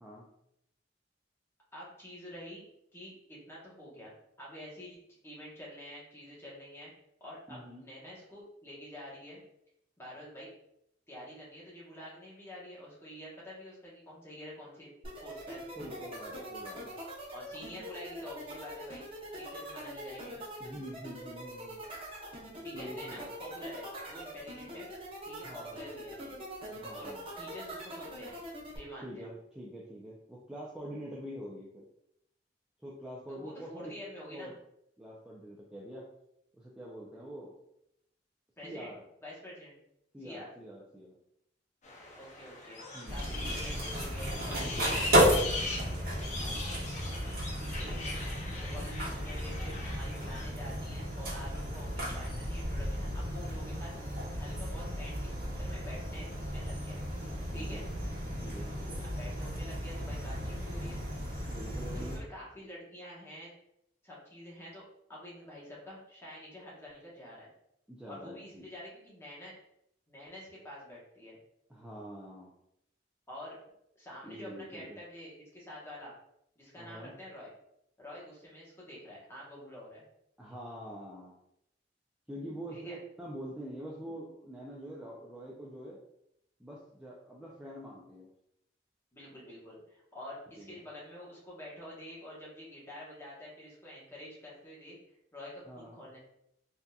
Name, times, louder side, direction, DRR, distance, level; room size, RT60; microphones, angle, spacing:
voice 1, 1.7-2.6 2.9-6.9 7.2-9.4 10.0-10.5 11.1-14.9 15.2-15.6 17.3-19.0 19.4-20.4 22.6-24.9 25.2-26.4 26.9-28.4 28.7-29.3 33.3-34.5 38.6-38.9 39.2-39.8 40.2-40.5 42.1-46.0 47.6-48.2 48.6-53.9 54.4-55.2 55.6-56.2 56.5-57.0 57.5-57.8 59.0-61.0 61.9-63.5 64.0-64.8 65.1-67.5 68.1-69.5 70.1-71.4 73.3-73.6 74.0-76.1 76.6-77.5 78.0-80.0 82.7-83.0 89.1-95.0 95.3-96.2, left 1 dB, 15° left, -6 dB, 1.0 m, -48 dB
voice 2, 7.5-7.8 15.8-16.9 20.6-21.8 22.7-23.2 25.4-25.8 26.7-27.3 29.0-31.9 32.8-33.9 34.3-34.5 35.0-36.1 36.5-37.5 38.6-39.0 40.1-41.2 42.9-43.3 44.5-45.1 46.3-46.7 57.5-57.8 58.4-59.0 61.5-62.2 67.9-68.7 71.7-72.5 74.2-75.0 76.8-77.1 80.4-81.3 82.3-86.0 86.6-88.3 90.6-90.7 95.7-96.0, equal, 5° right, -6 dB, 0.4 m, -45 dB
sound 1, 15.0-28.8, equal, 30° right, 0.8 m, -43 dB
sound 2, 41.8-50.5, left 3 dB, 40° left, 0.6 m, -41 dB
sound 3, 43.1-62.2, equal, 55° right, 1.1 m, -33 dB
3.6 x 2.7 x 2.3 m, 0.77 s
head